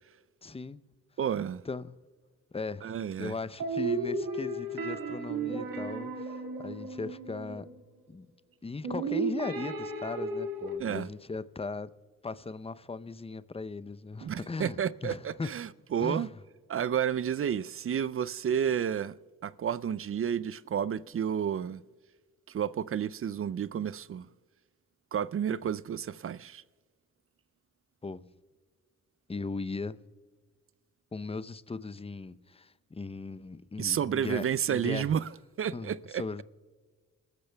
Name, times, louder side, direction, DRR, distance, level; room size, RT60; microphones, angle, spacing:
voice 1, 0.4-0.8 1.7-2.0 2.5-2.9 3.2-7.7 8.1-8.3 8.6-11.9 12.2-15.5 16.0-16.3 28.0-28.2 29.3-30.0 31.1-35.1 35.7-36.4, left 3 dB, 15° left, 0.6 m, -38 dB
voice 2, 1.2-1.6 2.8-3.3 10.8-11.1 14.2-16.3 16.7-19.2 19.4-21.8 22.5-24.3 25.1-26.6 33.8-35.3 35.6-36.2, right 8 dB, 40° right, 0.5 m, -31 dB
sound 1, 3.6-7.8 8.8-10.8, right 3 dB, 65° right, 2.0 m, -34 dB
28.0 x 13.5 x 2.3 m
hypercardioid pair, 45°, 37 cm